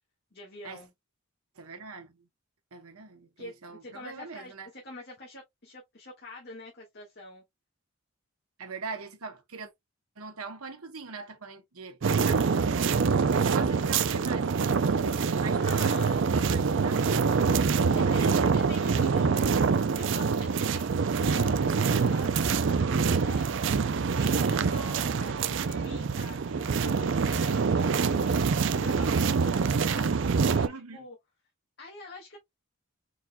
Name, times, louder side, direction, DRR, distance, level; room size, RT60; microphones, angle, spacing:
voice 1, 0.3-0.9 3.4-7.4 15.6-16.2 17.7-20.9 21.2-23.6 24.1-28.4 28.8-31.1 31.8-32.4, left 2 dB, 45° left, 1.6 m, -45 dB
voice 2, 1.5-2.3 2.7-4.7 8.6-9.7 10.2-13.0 13.3-14.9 15.4-17.2 17.9-18.5 30.6-31.1, right 4 dB, 90° right, 1.2 m, -42 dB
sound 1, 12.0-30.7, right 5 dB, 60° right, 0.4 m, -25 dB
4.6 x 3.9 x 2.2 m
head